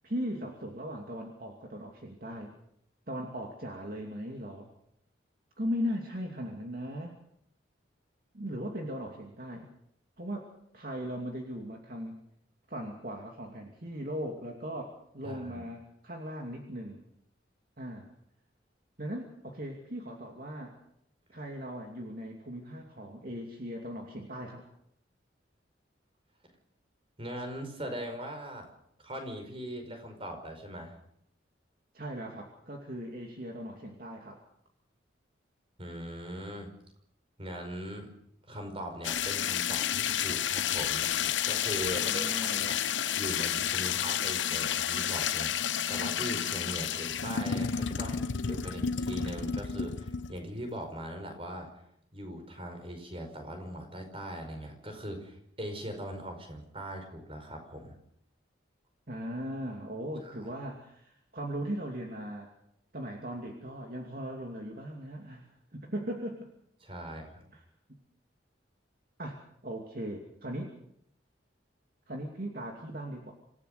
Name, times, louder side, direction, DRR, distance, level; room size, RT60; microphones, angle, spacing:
voice 1, 0.0-2.6 3.1-4.7 5.6-7.1 8.3-9.7 10.2-12.2 12.7-17.0 17.8-18.1 19.0-20.8 21.3-24.7 31.9-34.4 42.0-42.8 59.1-62.5 62.9-66.5 67.5-67.6 69.2-70.7 72.1-73.3, equal, 50° right, 1 dB, 2.7 m, -38 dB
voice 2, 15.2-15.7 27.2-28.7 29.0-31.0 35.8-36.7 37.4-38.1 38.5-41.1 41.4-42.8 43.1-51.8 52.1-58.0 60.2-60.5 66.8-67.4, equal, 30° right, 5 dB, 5.2 m, -40 dB
sound 1, 39.0-50.4, left 8 dB, 85° left, 0.9 m, -31 dB
27.0 x 16.0 x 6.8 m, 0.70 s
head